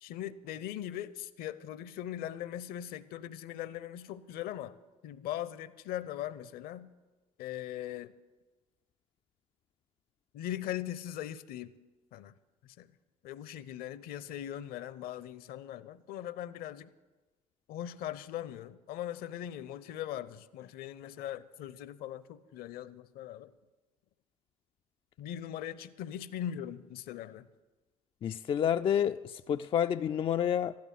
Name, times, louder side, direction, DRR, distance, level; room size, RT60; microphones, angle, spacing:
voice 1, 0.0-4.8 5.0-6.9 7.4-8.1 10.3-11.7 12.1-12.3 12.6-12.9 13.2-16.9 17.7-23.5 25.2-27.5, left 11 dB, 55° left, 0.7 m, -40 dB
voice 2, 28.2-30.8, left 9 dB, 30° left, 0.3 m, -29 dB
13.0 x 10.5 x 7.5 m
figure-of-eight pair, 60°, 19 cm